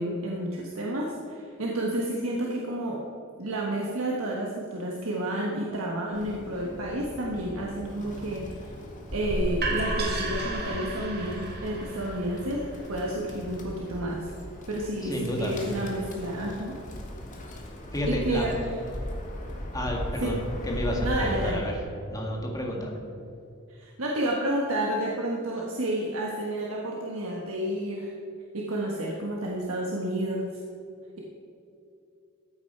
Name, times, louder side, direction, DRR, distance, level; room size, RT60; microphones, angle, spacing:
voice 1, 0.0-3.0 3.4-8.7 9.1-14.3 14.7-16.8 18.0-18.6 20.2-20.4 21.0-21.7 23.7-28.1 28.5-30.6, right 1 dB, 75° right, -2 dB, 1.4 m, -30 dB
Bird, 6.1-21.5, left 1 dB, 40° left, 1.8 m, -39 dB
sound 1, 9.1-14.9, right 2 dB, 50° right, 2.0 m, -33 dB
voice 2, 15.0-15.6 17.9-18.5 19.7-20.4 20.6-21.7 22.1-23.0, left 1 dB, 15° left, 0 dB, 1.9 m, -30 dB
14.5 x 8.6 x 4.6 m, 2.7 s
head